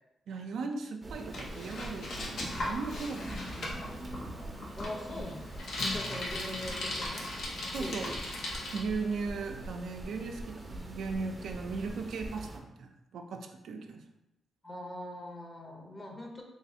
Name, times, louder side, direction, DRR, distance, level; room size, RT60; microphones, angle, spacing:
voice 1, 0.3-4.0 7.7-8.2 8.7-14.0, right 4 dB, 80° right, 4 dB, 0.4 m, -38 dB
sound 1, 1.0-12.6, right 1 dB, 25° right, 0.6 m, -44 dB
Bicycle, 1.3-8.8, left 1 dB, 70° left, 0.7 m, -38 dB
voice 2, 4.8-7.3 7.7-8.2 14.6-16.4, left 1 dB, 25° left, 1 dB, 0.8 m, -42 dB
3.2 x 3.0 x 2.7 m, 0.92 s
cardioid pair, 75°, 0 cm